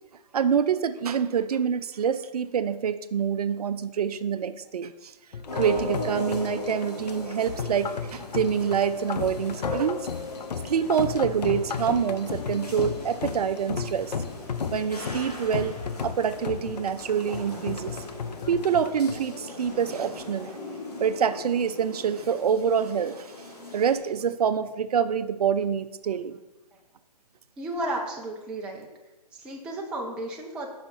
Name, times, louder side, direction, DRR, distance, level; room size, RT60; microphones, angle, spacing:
voice 1, 0.3-5.1 5.5-10.1 10.6-14.1 14.7-15.8 16.0-18.0 18.5-20.6 21.0-23.5 23.7-26.4, right 7 dB, 65° right, 12 dB, 0.4 m, -26 dB
sound 1, 5.3-20.2, left 6 dB, 85° left, 0.5 m, -34 dB
sound 2, 5.4-24.0, left 2 dB, 70° left, 2.0 m, -40 dB
voice 2, 27.6-28.9 29.4-30.7, right 1 dB, 5° right, -1 dB, 0.4 m, -33 dB
5.6 x 5.5 x 4.3 m, 1.0 s
hypercardioid pair, 145°, 21 cm